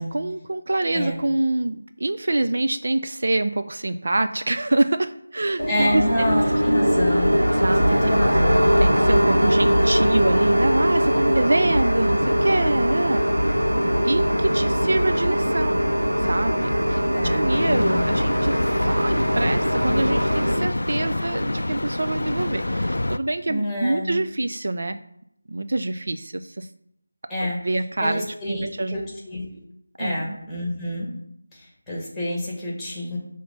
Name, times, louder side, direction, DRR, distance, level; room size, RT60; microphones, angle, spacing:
voice 1, 0.1-6.0 7.5-8.0 8.8-13.6 14.0-15.9 16.2-25.0 25.5-26.7 27.4-29.0 30.0-30.4, right 2 dB, 55° right, 9 dB, 0.3 m, -25 dB
sound 1, 5.6-20.6, equal, 90° right, 1.5 m, -21 dB
voice 2, 5.7-7.4 7.8-8.7 17.1-18.2 23.5-24.1 27.3-27.6 28.0-29.4 30.0-31.1 31.5-33.2, left 1 dB, 5° left, -5 dB, 1.5 m, -28 dB
sound 2, 17.5-23.2, left 1 dB, 75° left, 0.3 m, -27 dB
5.7 x 3.0 x 5.5 m, 0.75 s
figure-of-eight pair, 165°, 0 cm